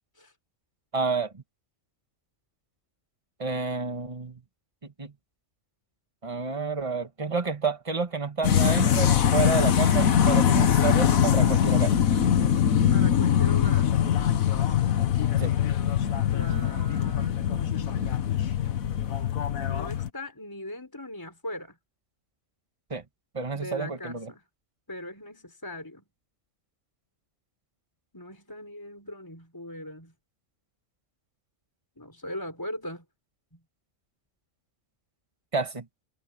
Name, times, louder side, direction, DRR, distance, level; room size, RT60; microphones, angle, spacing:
voice 1, 0.9-1.4 3.4-4.4 4.8-5.1 6.2-11.9 15.4-15.5 22.9-23.0 23.3-24.3 35.5-35.8, right 4 dB, 25° right, 1.7 m, -30 dB
sound 1, 8.4-20.1, left 9 dB, 85° left, 1.5 m, -22 dB
voice 2, 12.9-13.9 16.3-18.3 19.7-21.7 23.5-24.4 24.9-26.0 28.1-30.1 32.0-33.0, left 1 dB, 15° left, 4.6 m, -40 dB
omnidirectional pair, 1.4 m